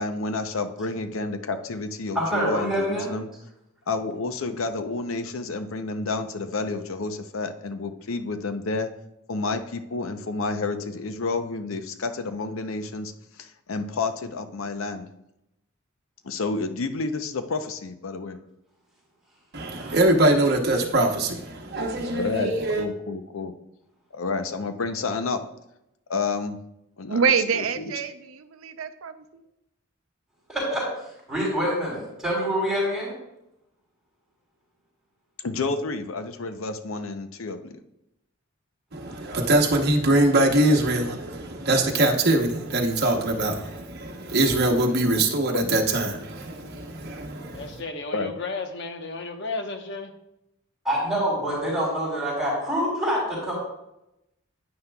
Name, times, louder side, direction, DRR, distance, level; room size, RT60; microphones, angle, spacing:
voice 1, 0.0-3.3 3.9-8.9 9.3-15.1 16.2-18.4 22.0-23.5 24.1-25.4 26.1-26.6 27.0-27.2 27.5-27.9 35.4-37.8 45.5-45.8 48.1-48.3, left 3 dB, 80° left, 0.7 m, -30 dB
voice 2, 2.1-3.1 19.8-19.9 30.5-30.8 31.3-33.1 50.8-53.5, equal, ahead, 3.4 m, -26 dB
voice 3, 19.5-22.9 38.9-47.8, right 1 dB, 50° right, 1.0 m, -23 dB
voice 4, 27.1-29.5, right 6 dB, 85° right, 0.5 m, -26 dB
voice 5, 47.5-50.1, left 3 dB, 60° left, 1.0 m, -33 dB
9.6 x 9.4 x 2.3 m
head